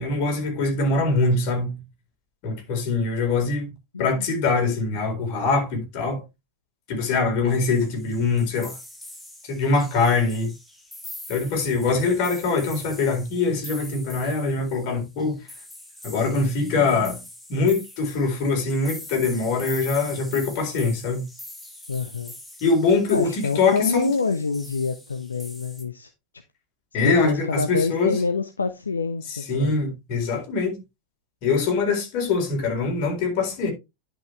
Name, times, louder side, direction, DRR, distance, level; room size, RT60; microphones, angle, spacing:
voice 1, 0.0-1.8 2.4-3.7 4.0-6.2 6.9-8.7 9.4-10.5 11.3-15.4 16.0-17.2 17.5-21.2 22.6-24.1 26.9-28.2 29.3-30.8 31.4-33.7, left 4 dB, 45° left, 4.2 m, -23 dB
voice 2, 3.9-4.3 21.9-22.3 23.1-26.1 27.0-29.8, left 4 dB, 75° left, 0.7 m, -26 dB
sound 1, 7.5-25.8, left 1 dB, 5° left, 2.2 m, -43 dB
10.5 x 6.2 x 3.2 m
figure-of-eight pair, 90°, 0 cm